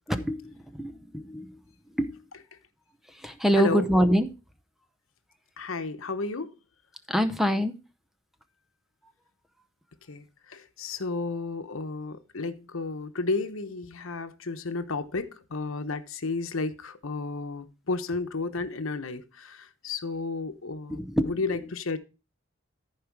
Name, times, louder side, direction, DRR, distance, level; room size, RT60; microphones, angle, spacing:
voice 1, 0.1-1.6 1.9-2.2 3.1-4.3 7.1-7.7 20.9-21.4, equal, ahead, 0.7 m, -25 dB
voice 2, 5.6-6.5 10.1-22.0, left 3 dB, 85° left, 0.9 m, -32 dB
14.5 x 4.8 x 4.7 m
head